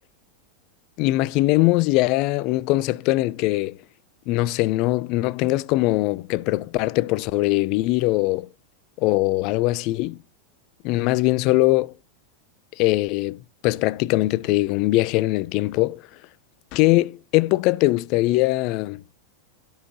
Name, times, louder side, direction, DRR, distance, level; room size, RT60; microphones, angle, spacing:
voice 1, 1.0-3.8 4.3-8.5 9.0-10.2 10.8-11.9 12.8-16.0 16.7-19.0, left 19 dB, 50° left, 0.4 m, -21 dB
12.0 x 6.5 x 2.9 m
figure-of-eight pair, 90°, 0 cm